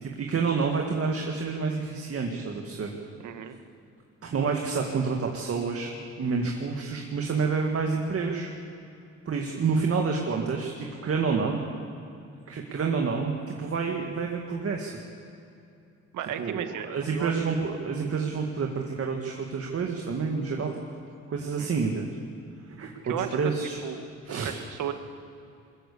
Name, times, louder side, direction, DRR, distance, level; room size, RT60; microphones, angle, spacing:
voice 1, 0.0-2.9 4.2-5.9 6.2-8.5 9.3-11.6 12.5-14.9 16.4-20.7 21.3-22.1 22.7-23.8 24.3-24.5, right 5 dB, 50° right, 1 dB, 2.0 m, -28 dB
voice 2, 3.2-3.6 16.1-17.3 21.6-21.7 23.0-23.4 23.8-24.9, right 9 dB, 80° right, 8 dB, 1.5 m, -35 dB
22.0 x 14.0 x 8.5 m, 2.7 s
cardioid pair, 90°, 30 cm